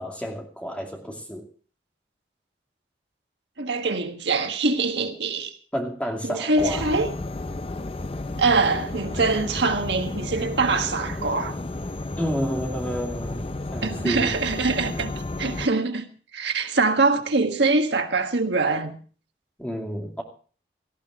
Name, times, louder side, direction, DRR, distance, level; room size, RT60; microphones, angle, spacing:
voice 1, 0.0-1.4 5.7-6.9 9.2-9.4 12.2-13.4 13.7-14.3 19.6-20.2, equal, 5° left, 2.5 m, -30 dB
voice 2, 3.6-5.5 6.2-7.1 8.4-11.6 13.8-15.1 15.4-16.1 16.3-19.0, right 3 dB, 80° right, 1.6 m, -23 dB
sound 1, 6.6-15.7, left 2 dB, 30° left, 0.6 m, -32 dB
17.5 x 14.5 x 3.7 m
head